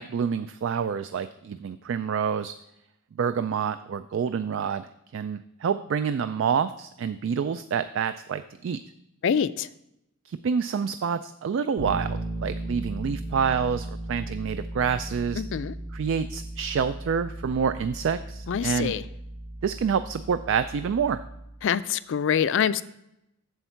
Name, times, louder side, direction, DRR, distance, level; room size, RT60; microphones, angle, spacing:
voice 1, 0.0-2.5 3.2-4.9 5.1-8.8 10.3-15.4 15.9-18.9 19.6-21.2, right 6 dB, 60° right, 11 dB, 0.3 m, -27 dB
voice 2, 9.2-9.7 15.4-15.7 18.5-19.0 21.6-22.8, left 8 dB, 60° left, 15 dB, 0.4 m, -25 dB
Bass guitar, 11.8-21.6, right 1 dB, 75° right, 2.8 m, -36 dB
8.0 x 7.2 x 4.4 m, 0.83 s
head